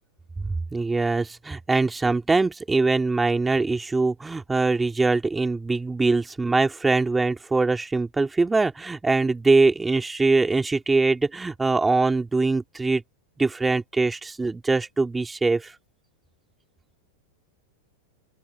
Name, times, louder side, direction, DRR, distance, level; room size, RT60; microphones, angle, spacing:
voice 1, 0.4-13.0 13.4-15.7, right 3 dB, 10° right, 2.3 m, -23 dB
open air
hypercardioid pair, 105°, 0 cm